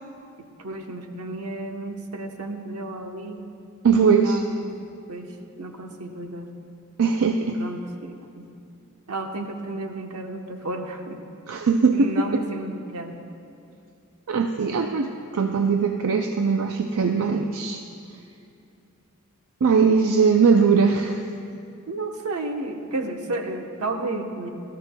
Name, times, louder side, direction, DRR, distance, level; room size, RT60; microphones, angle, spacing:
voice 1, 0.4-3.4 4.0-4.7 5.1-5.3 5.6-6.5 7.6-8.5 9.1-11.2 11.9-13.1 21.9-24.5, right 2 dB, 85° right, 3 dB, 1.0 m, -32 dB
voice 2, 3.8-4.4 7.0-7.6 11.5-12.4 14.3-17.8 19.6-21.2, right 5 dB, 70° right, 5 dB, 0.5 m, -20 dB
18.0 x 13.5 x 2.2 m, 2.6 s
head